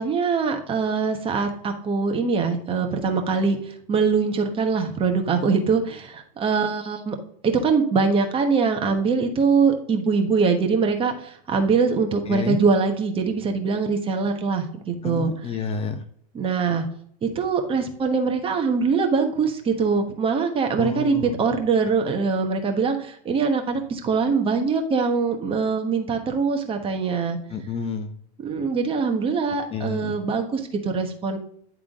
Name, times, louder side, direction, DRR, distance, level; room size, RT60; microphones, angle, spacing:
voice 1, 0.0-7.2 7.4-15.6 16.3-16.8 17.2-27.4 28.4-31.4, right 5 dB, 25° right, 4 dB, 1.2 m, -23 dB
voice 2, 12.3-12.6 15.0-16.0 20.8-21.4 27.5-28.1 29.7-30.1, left 6 dB, 30° left, 8 dB, 0.8 m, -29 dB
10.5 x 3.7 x 3.6 m, 0.65 s
supercardioid pair, 120°, 20 cm